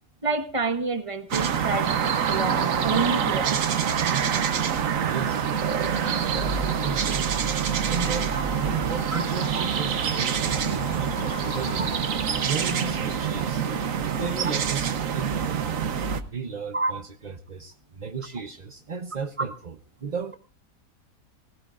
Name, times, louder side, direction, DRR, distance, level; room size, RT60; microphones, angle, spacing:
voice 1, 0.2-1.9 2.3-3.5 8.3-8.4 9.1-9.2 9.5-9.6 11.8-11.9 16.7-16.9, right 3 dB, 20° right, 8 dB, 1.2 m, -28 dB
sound 1, 1.3-16.2, right 7 dB, 60° right, 1.3 m, -26 dB
voice 2, 5.0-5.9 6.3-8.3 8.6-11.9 12.4-13.6 14.1-15.8 16.3-20.4, right 5 dB, 40° right, 6 dB, 0.6 m, -35 dB
sound 2, 5.5-14.4, left 3 dB, 85° left, 2.0 m, -40 dB
19.0 x 16.5 x 2.5 m, 0.40 s
omnidirectional pair, 1.7 m